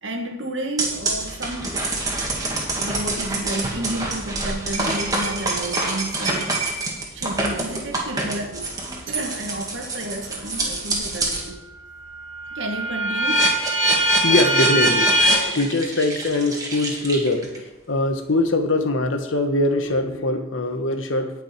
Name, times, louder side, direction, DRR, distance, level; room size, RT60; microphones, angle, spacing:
voice 1, 0.0-1.7 2.7-6.8 7.1-8.7 9.1-11.6 12.6-13.5, right 1 dB, 75° right, 4 dB, 1.9 m, -31 dB
sound 1, 0.8-11.5 11.9-17.6, right 1 dB, 20° right, 2.0 m, -24 dB
voice 2, 14.2-21.3, left 2 dB, 85° left, 6 dB, 1.4 m, -23 dB
18.5 x 6.2 x 4.6 m, 1.0 s
head